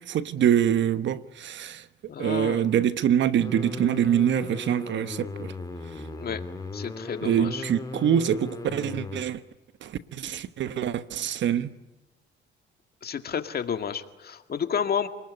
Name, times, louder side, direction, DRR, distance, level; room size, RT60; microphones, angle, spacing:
voice 1, 0.1-1.8 2.2-5.5 7.2-9.4 9.8-11.7, right 9 dB, 70° right, 1.2 m, -25 dB
voice 2, 2.1-2.7 6.2-6.4 6.7-7.7 13.0-15.1, left 7 dB, 50° left, 2.0 m, -31 dB
sound 1, 3.4-9.2, left 3 dB, 20° left, 3.2 m, -37 dB
28.5 x 20.5 x 9.9 m
cardioid pair, 90°, 20 cm